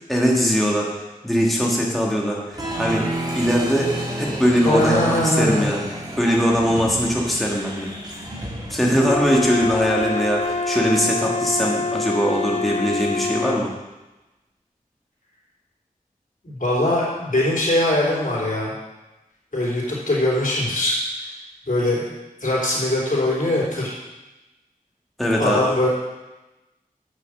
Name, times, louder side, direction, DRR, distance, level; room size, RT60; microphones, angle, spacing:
voice 1, 0.1-0.9 1.2-3.1 3.3-5.8 6.2-7.9 8.7-13.7 25.2-25.6, equal, ahead, -3 dB, 1.6 m, -21 dB
Applause, 2.5-10.9, right 1 dB, 25° right, 2.0 m, -32 dB
voice 2, 4.6-5.7 16.4-18.7 19.5-21.3 21.7-22.1 22.4-23.9 25.4-25.9, left 1 dB, 65° left, -6 dB, 3.5 m, -21 dB
Wind instrument woodwind instrument, 9.0-13.6, left 4 dB, 45° left, 0.6 m, -26 dB
7.7 x 6.5 x 6.5 m, 1.1 s
wide cardioid pair, 60°, 15 cm